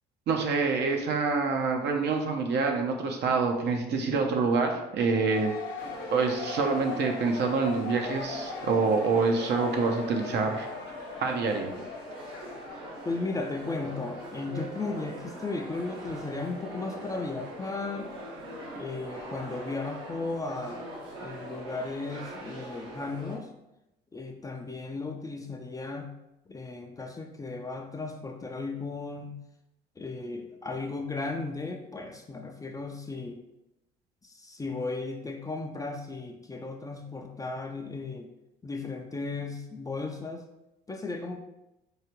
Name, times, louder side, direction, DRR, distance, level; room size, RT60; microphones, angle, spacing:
voice 1, 0.3-5.5 6.1-10.7 11.2-11.7, right 4 dB, 55° right, 3 dB, 0.7 m, -26 dB
sound 1, 5.1-12.8, left 5 dB, 70° left, 0.5 m, -40 dB
sound 2, 5.8-23.4, right 1 dB, 75° right, 1.3 m, -42 dB
voice 2, 13.0-18.1 18.7-20.8 21.2-23.5 24.1-26.1 26.5-29.4 30.0-33.4 34.2-38.3 38.6-40.5 40.9-41.4, left 3 dB, 15° left, 3 dB, 0.5 m, -35 dB
4.7 x 2.4 x 3.1 m, 0.90 s
hypercardioid pair, 70°, 21 cm